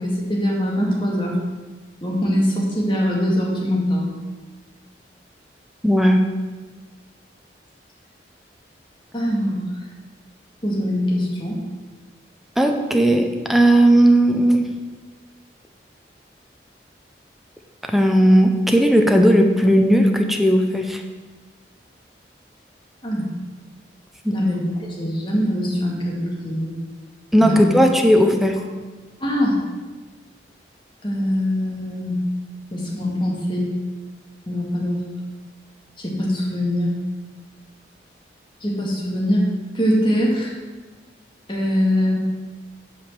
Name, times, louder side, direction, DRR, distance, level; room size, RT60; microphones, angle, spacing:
voice 1, 0.0-1.4 2.0-4.1 9.1-9.6 10.6-11.6 23.0-23.3 24.3-26.7 27.4-27.7 29.2-29.6 31.0-32.2 32.7-33.7 34.5-35.0 36.0-37.0 38.6-39.5 39.7-40.5 41.5-42.2, equal, 25° left, -2 dB, 1.9 m, -22 dB
voice 2, 5.8-6.2 12.6-14.7 17.8-21.0 24.2-24.3 27.3-28.6, equal, ahead, 4 dB, 0.6 m, -16 dB
8.3 x 5.0 x 7.5 m, 1.3 s
head